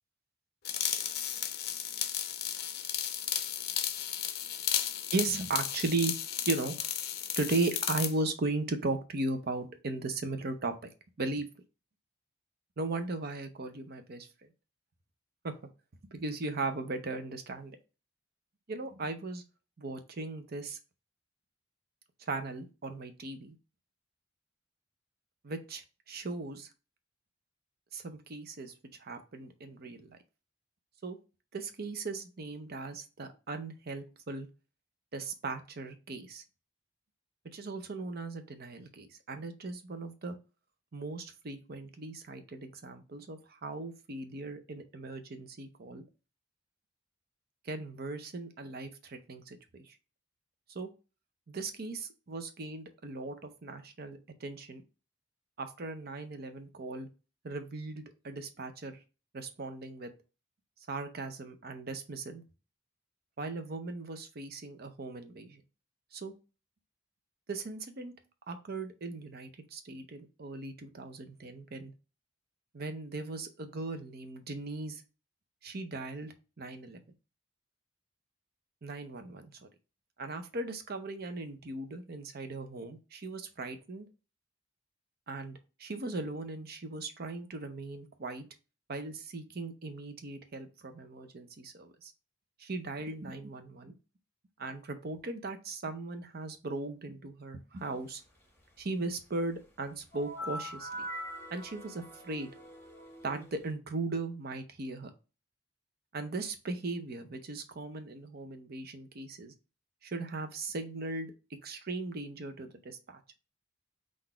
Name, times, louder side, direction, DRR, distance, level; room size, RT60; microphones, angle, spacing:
sound 1, 0.6-8.1, left 10 dB, 55° left, 0.5 m, -34 dB
voice 1, 5.1-6.1 6.5-6.9 7.4-10.7 11.2-11.5 12.8-14.5 15.4-15.5 16.0-17.7 18.7-19.4 19.8-20.8 22.3-23.6 25.4-26.7 27.9-28.7 29.0-30.2 31.0-31.2 31.5-34.5 35.1-36.4 37.5-40.4 40.9-46.0 47.6-50.0 50.7-50.9 51.5-54.8 55.6-57.1 57.4-59.0 59.3-60.1 60.9-62.4 63.4-65.6 66.1-66.3 67.5-68.1 68.5-71.9 72.7-75.0 75.6-77.0 78.8-79.5 80.2-84.1 85.3-88.5 88.9-92.1 92.6-94.0 94.6-98.2 98.8-101.1 101.5-102.5 103.2-105.1 106.1-109.5 110.0-111.3 111.6-113.2, right 3 dB, 55° right, 8 dB, 0.7 m, -37 dB
sound 2, 100.1-103.7, equal, 10° left, 1.6 m, -43 dB
4.0 x 2.5 x 4.3 m, 0.32 s
head